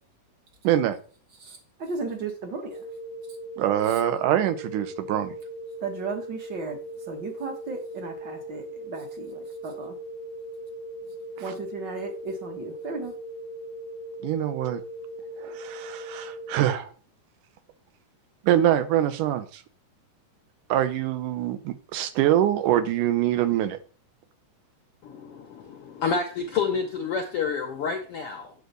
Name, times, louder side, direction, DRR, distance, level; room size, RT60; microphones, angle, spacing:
voice 1, 0.6-1.0 3.6-5.4 11.4-11.5 14.2-14.8 15.4-16.9 18.4-19.6 20.7-23.8, right 12 dB, 75° right, 2.2 m, -24 dB
voice 2, 1.4-2.8 5.8-6.8 7.1-9.9 11.4-13.1, right 4 dB, 55° right, 1.2 m, -35 dB
sound 1, 2.7-16.5, right 1 dB, 20° left, 0.7 m, -39 dB
voice 3, 25.0-28.5, left 5 dB, 75° left, 1.3 m, -29 dB
9.5 x 4.0 x 6.7 m
omnidirectional pair, 3.9 m